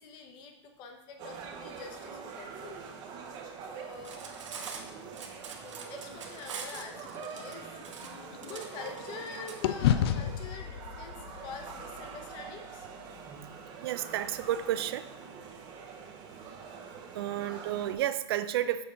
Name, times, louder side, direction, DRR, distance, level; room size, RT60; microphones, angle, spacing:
voice 1, 0.0-2.8 3.6-4.2 5.6-7.7 8.5-12.9, left 5 dB, 30° left, 5 dB, 0.8 m, -45 dB
sound 1, 1.2-17.9, right 6 dB, 25° right, 0.8 m, -45 dB
Cutlery silverware, 3.9-9.6, right 6 dB, 90° right, 1.1 m, -43 dB
sound 2, 6.9-9.2 9.6-13.9, left 10 dB, 60° left, 0.4 m, -33 dB
voice 2, 13.8-15.1 17.1-18.8, right 12 dB, 55° right, 13 dB, 0.4 m, -31 dB
6.9 x 3.7 x 5.3 m, 0.92 s
hypercardioid pair, 150°, 15 cm